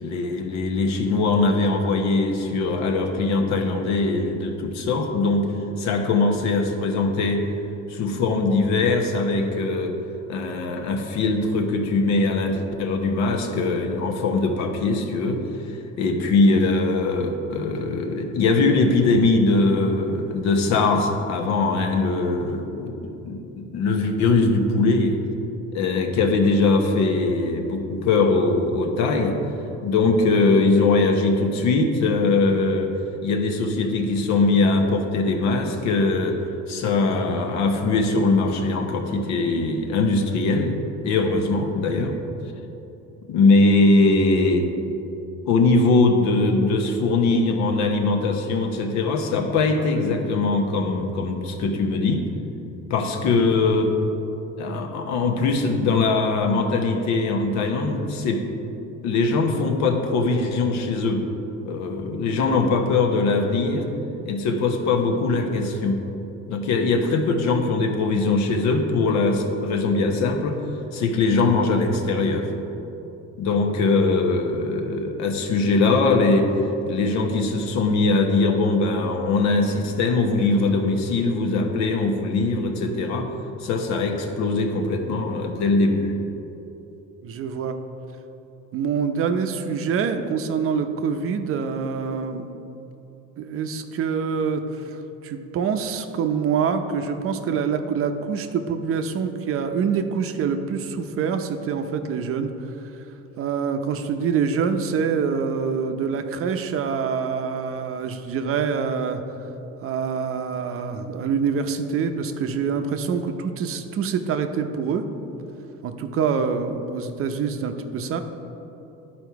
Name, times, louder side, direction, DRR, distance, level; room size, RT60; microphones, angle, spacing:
voice 1, 0.0-5.5 5.8-7.5 7.9-10.0 10.3-15.4 15.7-25.2 25.7-29.4 29.8-32.9 33.2-36.4 36.7-40.8 41.0-42.1 43.3-44.7 45.5-52.2 52.9-53.9 54.6-58.4 59.0-61.2 61.6-63.9 64.2-66.0 66.5-70.6 70.9-72.5 73.4-76.5 76.9-83.3 83.6-86.1, left 3 dB, 70° left, 4 dB, 1.0 m, -21 dB
voice 2, 87.2-87.7 88.7-92.5 93.4-102.7 103.4-109.2 109.8-115.0 115.8-118.2, right 6 dB, 50° right, 7 dB, 0.6 m, -25 dB
11.0 x 4.4 x 4.7 m, 3.0 s
cardioid pair, 115°, 29 cm